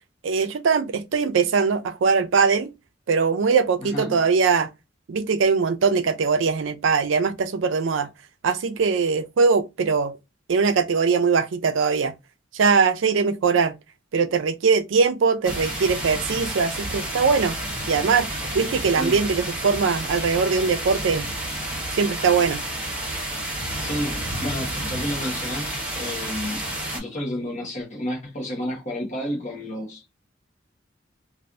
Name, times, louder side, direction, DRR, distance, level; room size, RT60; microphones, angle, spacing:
voice 1, 0.2-2.7 3.1-4.7 5.1-8.1 8.4-10.1 10.5-12.1 12.5-13.7 14.1-17.6 17.9-18.3 18.5-21.3 21.9-22.6, right 5 dB, 75° right, 0.4 m, -21 dB
sound 1, 15.4-27.0, right 1 dB, 5° right, 1.4 m, -30 dB
voice 2, 23.8-26.6 26.9-30.1, equal, 40° left, 1.2 m, -31 dB
3.2 x 2.5 x 2.5 m
head